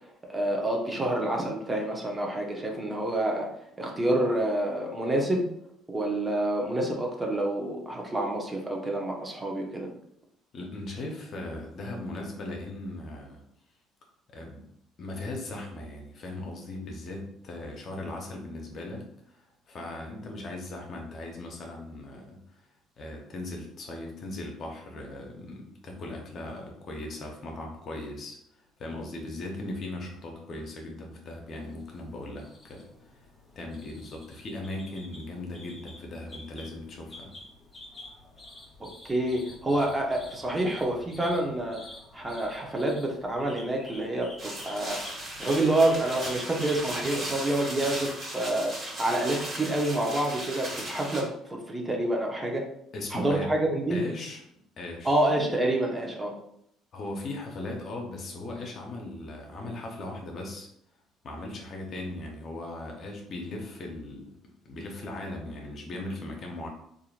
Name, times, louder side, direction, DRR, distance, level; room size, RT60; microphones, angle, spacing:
voice 1, 0.0-3.5 3.8-5.5 5.9-9.9 39.0-41.8 42.1-45.0 45.4-48.7 49.0-52.6 53.1-54.0 55.0-56.3, right 1 dB, 20° right, 0 dB, 0.8 m, -28 dB
voice 2, 10.5-13.4 14.3-14.7 15.0-33.2 33.6-37.3 52.9-53.5 53.9-54.4 54.8-55.2 56.9-60.7 61.2-66.7, left 2 dB, 55° left, 1 dB, 0.7 m, -38 dB
sound 1, 31.5-47.5, left 1 dB, 25° left, 1.2 m, -49 dB
sound 2, 44.4-51.2, right 1 dB, 40° right, 1.4 m, -37 dB
2.9 x 2.5 x 2.5 m, 0.73 s
hypercardioid pair, 65°, 0 cm